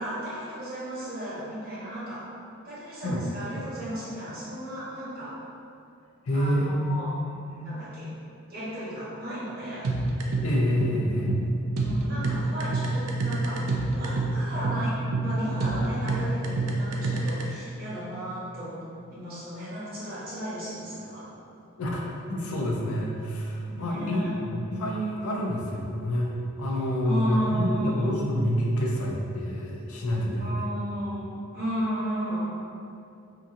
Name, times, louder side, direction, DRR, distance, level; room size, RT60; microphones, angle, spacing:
voice 1, 0.0-2.2 2.6-5.4 6.3-7.1 7.6-8.1 8.5-10.0 11.8-18.8 19.1-21.3 23.6-24.3 27.0-28.1 30.4-32.4, equal, 45° right, -11 dB, 0.9 m, -34 dB
voice 2, 6.2-7.1 7.5-7.8 10.4-11.3 21.8-26.3 26.6-30.6, equal, 80° left, -2 dB, 0.5 m, -28 dB
sound 1, 9.8-17.4, right 2 dB, 85° right, 0.4 m, -27 dB
2.8 x 2.4 x 2.5 m, 2.6 s
head